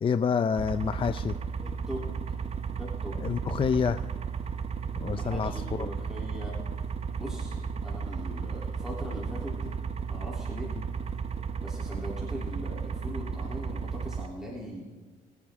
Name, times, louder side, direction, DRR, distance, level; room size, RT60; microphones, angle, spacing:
voice 1, 0.0-1.3 3.2-4.0 5.0-5.9, left 6 dB, 30° left, 12 dB, 0.5 m, -28 dB
sound 1, 0.6-14.3, right 6 dB, 40° right, 0.9 m, -34 dB
voice 2, 1.6-2.0 2.7-3.5 5.0-6.6 7.2-7.6 7.8-9.8 10.1-10.7 11.6-14.8, equal, 5° right, -4 dB, 3.2 m, -40 dB
23.5 x 8.5 x 3.6 m, 1.3 s
supercardioid pair, 75°, 17 cm